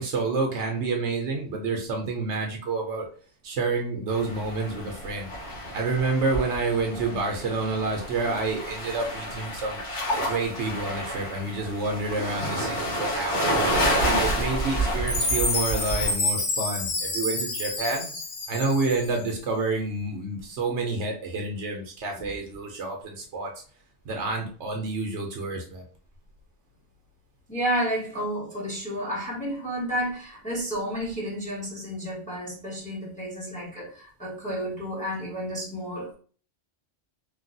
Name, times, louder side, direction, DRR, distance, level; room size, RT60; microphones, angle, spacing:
voice 1, 0.0-3.1 3.4-5.3 5.7-9.8 10.2-13.6 14.1-18.1 18.5-23.5 24.0-25.8, right 3 dB, 70° right, 2 dB, 0.9 m, -28 dB
sound 1, 4.1-16.1, equal, 50° left, 1.5 m, -29 dB
Chime, 15.1-19.3, left 2 dB, 85° left, 1.2 m, -28 dB
voice 2, 27.5-36.1, equal, 5° left, -4 dB, 0.8 m, -31 dB
3.1 x 2.3 x 2.6 m, 0.42 s
omnidirectional pair, 1.3 m